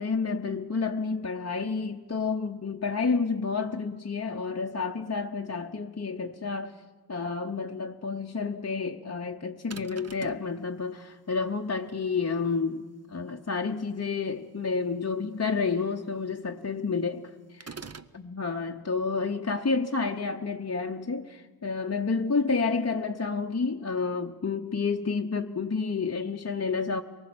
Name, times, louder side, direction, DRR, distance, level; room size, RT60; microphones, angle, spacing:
voice 1, 0.0-6.8 7.1-17.8 18.1-27.0, left 4 dB, 40° left, 0.7 m, -30 dB
sound 1, 9.7-10.5 17.6-18.2, right 5 dB, 40° right, 0.7 m, -42 dB
24.5 x 19.0 x 7.7 m
wide cardioid pair, 65°, 40 cm